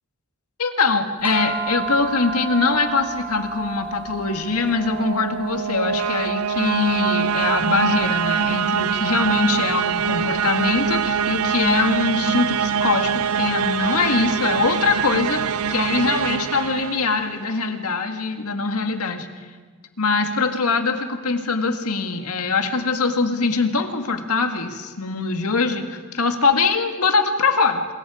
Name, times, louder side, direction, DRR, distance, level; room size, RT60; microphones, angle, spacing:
voice 1, 0.6-15.4 15.7-19.3 20.0-27.9, left 4 dB, 85° left, 6 dB, 1.9 m, -22 dB
sound 1, 1.2-11.7, right 4 dB, 10° right, 3.4 m, -35 dB
sound 2, 4.5-17.6, right 7 dB, 80° right, 0.5 m, -24 dB
27.5 x 22.0 x 5.0 m, 1.4 s
head